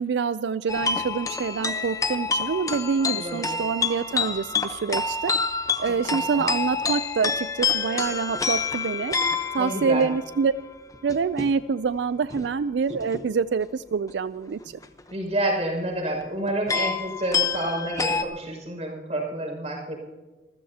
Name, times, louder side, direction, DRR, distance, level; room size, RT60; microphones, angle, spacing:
voice 1, 0.0-5.3 5.8-9.1 9.5-10.5 11.0-14.6, right 5 dB, 85° right, 15 dB, 0.4 m, -26 dB
sound 1, 0.7-10.5 10.9-11.5 12.3-12.5 12.9-13.2 14.6-15.1 16.2-16.3 16.5-18.2, left 5 dB, 20° left, 0.9 m, -28 dB
voice 2, 3.1-3.6 6.1-6.4 9.6-10.1 15.1-20.0, right 1 dB, 40° right, 1 dB, 5.8 m, -29 dB
27.0 x 15.0 x 2.8 m, 1.2 s
head